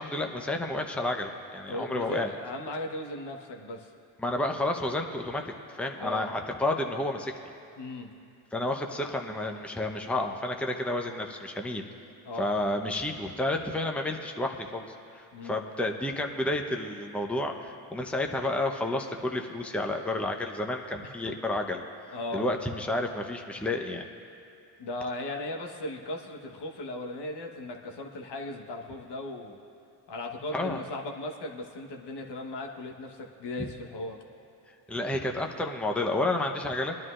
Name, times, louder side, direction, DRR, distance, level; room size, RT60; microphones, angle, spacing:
voice 1, 0.0-2.3 4.2-7.3 8.5-11.8 12.4-14.9 15.1-24.0 30.5-30.8 34.9-37.0, left 1 dB, 5° left, 2 dB, 0.9 m, -31 dB
voice 2, 1.7-3.9 6.0-6.3 7.8-8.1 12.2-12.5 15.3-15.6 22.1-22.5 24.8-29.6 30.1-34.2, left 1 dB, 55° left, 2 dB, 1.3 m, -37 dB
22.5 x 10.5 x 2.5 m, 2.6 s
hypercardioid pair, 55°, 47 cm